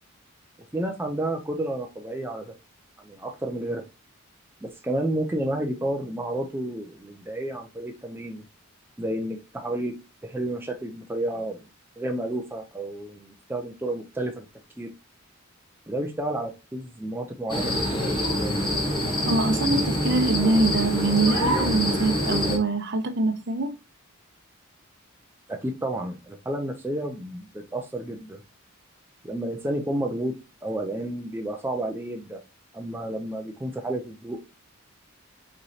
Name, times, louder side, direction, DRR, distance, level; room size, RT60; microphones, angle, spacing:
voice 1, 0.7-2.5 3.0-3.8 4.6-8.4 9.0-9.9 10.2-11.6 12.0-14.5 14.8-14.9 15.9-18.1 25.5-28.4 29.2-32.4 32.7-34.4, right 1 dB, 10° right, 0.4 m, -31 dB
sound 1, 17.5-22.6, left 1 dB, 20° left, 1.0 m, -25 dB
voice 2, 19.2-23.8, right 2 dB, 55° right, 0.6 m, -24 dB
5.2 x 3.1 x 2.7 m
head